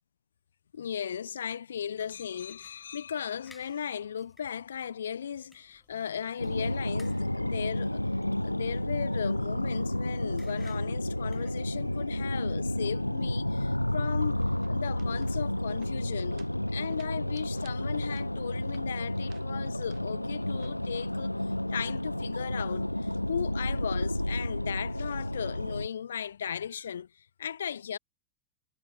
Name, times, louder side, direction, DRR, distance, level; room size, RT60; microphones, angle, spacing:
voice 1, 0.7-8.0 8.4-14.4 14.7-28.0, left 8 dB, 65° left, 1.9 m, -36 dB
sound 1, 2.0-12.0, left 2 dB, 5° left, 6.7 m, -63 dB
sound 2, 6.4-25.9, left 1 dB, 85° left, 0.6 m, -31 dB
sound 3, 14.1-21.5, right 26 dB, 40° right, 8.0 m, -61 dB
figure-of-eight pair, 90°, 0 cm